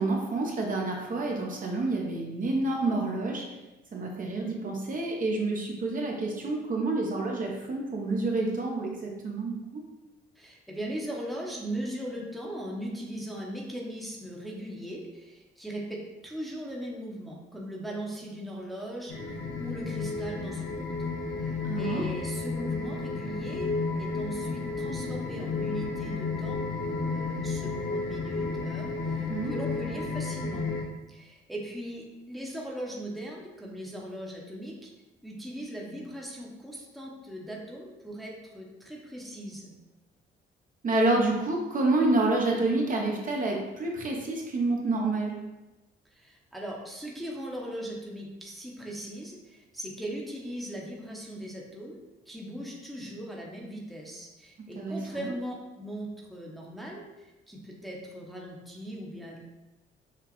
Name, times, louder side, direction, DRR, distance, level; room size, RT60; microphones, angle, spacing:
voice 1, 0.0-3.4 3.9-9.8 21.6-22.0 29.3-29.5 40.8-45.3 54.8-55.3, right 2 dB, 45° right, -1 dB, 0.8 m, -28 dB
voice 2, 10.4-20.9 21.4-30.7 31.1-34.9 35.2-39.7 46.1-52.0 52.3-59.4, right 1 dB, ahead, -2 dB, 0.8 m, -39 dB
sound 1, 19.1-30.8, left 3 dB, 85° left, 0.8 m, -32 dB
5.8 x 2.4 x 3.0 m, 1.0 s
cardioid pair, 90°, 20 cm